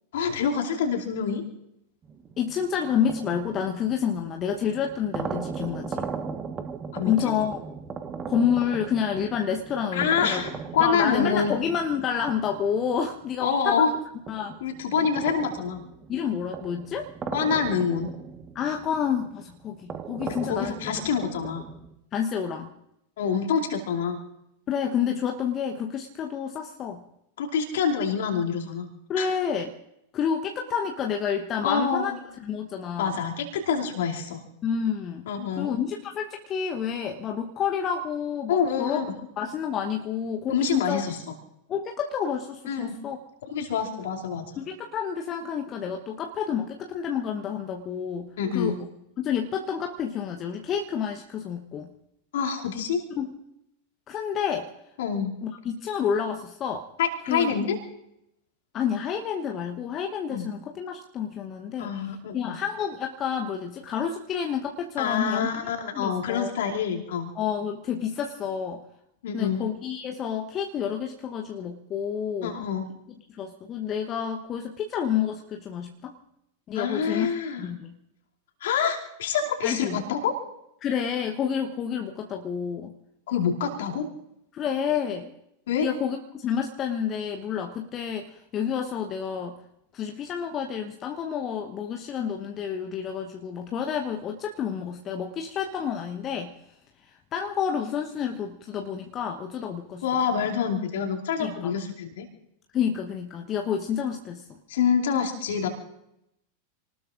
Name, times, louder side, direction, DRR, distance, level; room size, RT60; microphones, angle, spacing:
voice 1, 0.1-1.4 4.1-4.2 6.9-7.3 9.9-11.5 13.4-13.9 14.6-15.8 17.3-18.1 20.2-21.6 23.2-24.2 27.4-28.9 29.2-29.3 31.6-32.2 33.0-34.4 35.3-35.8 38.5-39.1 40.5-41.2 42.7-43.0 43.5-44.5 48.4-48.7 52.3-53.0 55.0-55.3 57.0-57.8 60.3-60.5 61.8-62.6 65.0-67.3 69.2-69.6 72.4-72.9 76.7-77.7 78.6-80.3 83.3-84.1 85.7-85.9 100.0-102.3 104.7-105.7, left 6 dB, 55° left, 0 dB, 2.7 m, -26 dB
sound 1, 2.0-13.7 14.3-21.9, right 6 dB, 20° right, 1.3 m, -38 dB
voice 2, 2.4-6.1 7.0-7.6 8.3-10.5 10.8-13.9 14.3-14.6 16.1-17.1 18.5-20.9 22.1-22.7 24.7-27.0 29.1-29.7 30.1-32.1 32.4-33.2 34.6-35.3 35.6-39.0 39.4-41.0 41.7-43.2 44.6-48.8 49.2-51.9 53.2-53.3 54.1-54.7 55.4-56.9 57.3-57.7 58.7-61.9 62.3-65.5 65.9-66.5 67.3-68.8 69.3-72.6 73.4-76.2 76.7-77.3 77.6-77.9 79.6-80.0 80.8-82.9 84.5-85.3 85.8-89.6 89.9-96.5 97.3-100.0 101.4-101.8 102.7-104.6, left 7 dB, 30° left, 3 dB, 1.0 m, -29 dB
28.0 x 19.0 x 2.5 m, 0.82 s
figure-of-eight pair, 90°, 0 cm